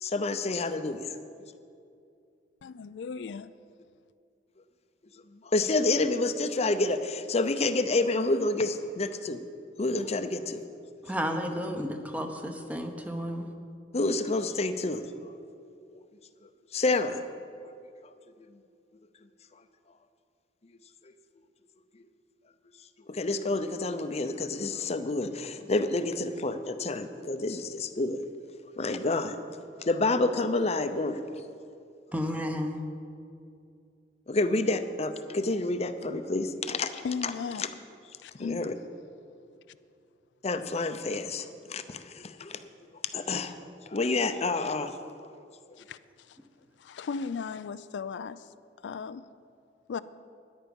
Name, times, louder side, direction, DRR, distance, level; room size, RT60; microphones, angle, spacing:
voice 1, 0.0-1.0 5.4-9.4 9.8-10.6 13.9-15.3 16.7-17.2 23.1-28.2 28.8-29.4 29.8-31.2 34.3-37.3 37.6-37.7 38.4-38.7 40.4-42.6 43.1-43.5 43.9-44.9, left 2 dB, 40° left, 10 dB, 0.6 m, -28 dB
voice 2, 2.6-3.5 37.0-37.6 38.2-38.7 45.8-46.0 46.3-46.4 46.8-48.5 48.8-49.3 49.9-50.0, left 5 dB, 85° left, 14 dB, 0.4 m, -36 dB
voice 3, 11.0-13.5 32.1-32.8, equal, 10° right, 5 dB, 0.9 m, -32 dB
13.5 x 10.5 x 5.3 m, 2.5 s
head